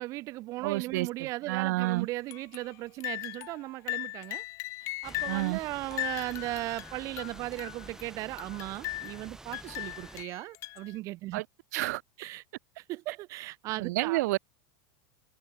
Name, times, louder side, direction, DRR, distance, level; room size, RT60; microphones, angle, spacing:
voice 1, 0.0-4.4 4.8-11.4 12.2-12.4 12.8-14.2, right 18 dB, 35° right, 0.6 m, -37 dB
voice 2, 0.6-2.1 5.3-5.6 11.3-11.4 11.7-12.0 13.8-14.4, right 20 dB, 60° right, 0.8 m, -29 dB
sound 1, 2.3-2.7 3.0-3.6 3.9-5.5 5.9-8.0 8.4-9.3 9.5-11.0, left 19 dB, 30° left, 0.5 m, -38 dB
sound 2, 5.0-10.2, right 2 dB, 5° right, 2.7 m, -49 dB
supercardioid pair, 160°, 10 cm